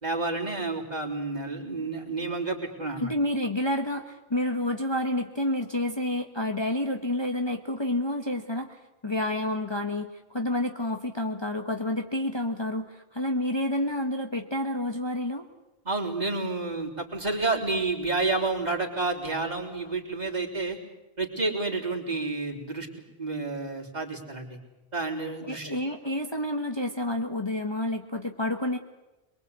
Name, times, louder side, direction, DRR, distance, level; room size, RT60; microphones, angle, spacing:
voice 1, 0.0-3.1 15.9-20.8 21.2-22.9 23.2-24.6 24.9-25.8, right 3 dB, 40° right, -1 dB, 3.7 m, -30 dB
voice 2, 3.0-15.4 25.4-28.8, left 1 dB, 25° left, 3 dB, 1.4 m, -29 dB
23.0 x 23.0 x 8.3 m, 1.0 s
omnidirectional pair, 1.1 m